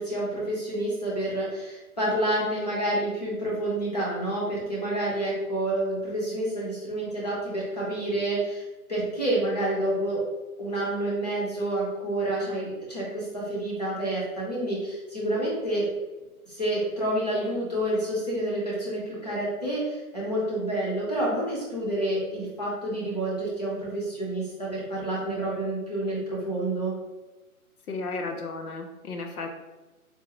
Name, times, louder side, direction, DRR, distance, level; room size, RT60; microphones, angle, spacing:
voice 1, 0.0-8.6 8.9-10.2 10.6-15.9 16.5-26.9, right 1 dB, 30° left, -5 dB, 0.7 m, -28 dB
voice 2, 27.9-29.6, left 3 dB, 80° left, 4 dB, 0.8 m, -34 dB
3.7 x 2.4 x 2.9 m, 1.1 s
hypercardioid pair, 175°, 44 cm